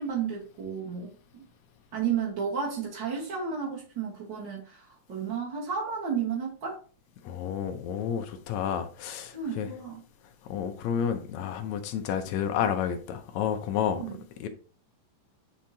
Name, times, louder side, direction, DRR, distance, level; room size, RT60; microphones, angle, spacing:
voice 1, 0.0-1.4 1.9-6.8 9.3-10.0 13.9-14.2, right 6 dB, 55° right, 1.3 m, -32 dB
voice 2, 7.2-9.7 10.5-14.0 14.4-14.5, left 8 dB, 75° left, 1.7 m, -30 dB
8.9 x 4.3 x 2.8 m
omnidirectional pair, 3.9 m